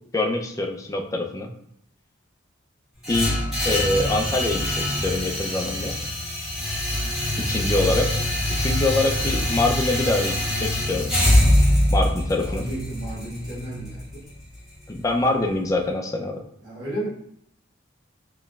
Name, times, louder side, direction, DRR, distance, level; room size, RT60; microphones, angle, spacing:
voice 1, 0.1-1.5 3.1-3.4 3.6-5.9 7.4-8.1 8.6-11.1 11.9-12.6 14.9-16.4, left 2 dB, 15° left, 2 dB, 0.4 m, -24 dB
sound 1, 3.0-15.1, left 1 dB, ahead, 1.5 m, -24 dB
voice 2, 12.4-14.3 16.6-17.1, right 1 dB, 60° right, -5 dB, 1.3 m, -33 dB
4.5 x 3.0 x 2.3 m, 0.72 s
head